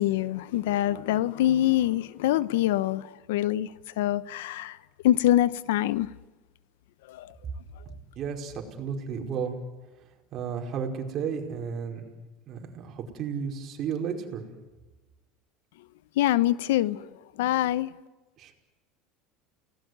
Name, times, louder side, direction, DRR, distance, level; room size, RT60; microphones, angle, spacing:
voice 1, 0.0-4.8 5.0-6.1 7.1-7.3 7.8-7.9 16.2-17.9, left 13 dB, 90° left, 18 dB, 0.8 m, -25 dB
voice 2, 7.8-9.6 10.3-12.0 12.5-14.4 18.4-18.5, right 7 dB, 45° right, 2 dB, 5.1 m, -33 dB
29.5 x 19.0 x 9.6 m, 1.2 s
supercardioid pair, 120°, 0 cm